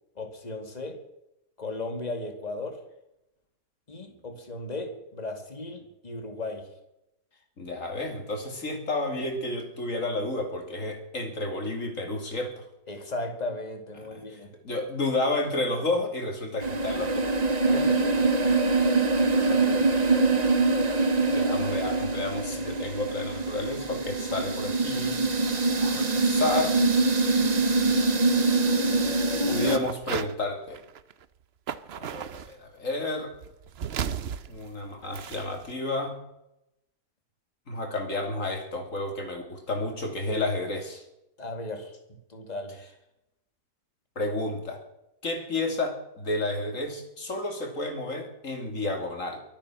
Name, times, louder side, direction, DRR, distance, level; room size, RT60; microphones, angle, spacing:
voice 1, 0.2-1.0 1.6-2.8 3.9-6.7 12.9-14.5 17.7-18.2 41.4-42.8, left 2 dB, 25° left, 5 dB, 2.3 m, -36 dB
voice 2, 7.6-12.6 13.9-17.3 17.6-17.8 19.4-20.1 21.3-25.2 25.5-26.8 27.4-27.6 29.5-30.8 32.0-33.3 34.5-36.1 37.7-41.0 44.1-44.8 45.2-49.4, left 2 dB, 50° left, 4 dB, 3.2 m, -31 dB
sound 1, 16.6-29.8, right 3 dB, 30° right, 1.0 m, -24 dB
sound 2, 29.7-30.3 30.7-31.2 31.7-32.5 33.3-35.7, right 8 dB, 55° right, 0.7 m, -35 dB
24.0 x 8.9 x 6.2 m, 0.86 s
omnidirectional pair, 1.8 m